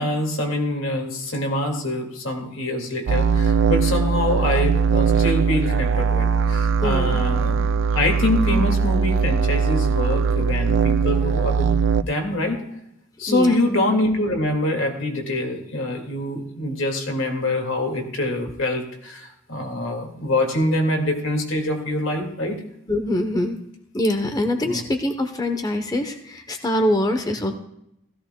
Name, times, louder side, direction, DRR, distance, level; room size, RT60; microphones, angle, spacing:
voice 1, 0.0-7.7 7.9-11.7 12.0-12.6 13.2-22.6 24.6-24.8, left 1 dB, 85° left, 2 dB, 2.1 m, -25 dB
sound 1, 3.1-12.0, right 5 dB, 70° right, 0.4 m, -20 dB
voice 2, 6.8-7.2 13.3-13.6 22.9-23.5 23.9-27.5, left 1 dB, 20° left, 6 dB, 0.8 m, -24 dB
16.0 x 14.0 x 2.2 m, 0.77 s
head